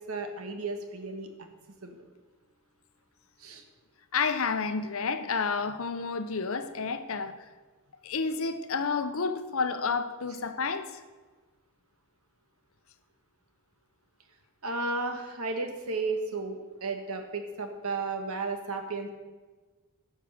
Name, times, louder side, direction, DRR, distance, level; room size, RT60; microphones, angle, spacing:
voice 1, 0.1-1.3 1.8-1.9 3.4-3.6 14.6-19.1, right 3 dB, 70° right, 6 dB, 1.4 m, -33 dB
voice 2, 4.1-7.3 8.0-10.9, left 4 dB, 65° left, 10 dB, 0.8 m, -30 dB
11.0 x 6.5 x 6.6 m, 1.3 s
head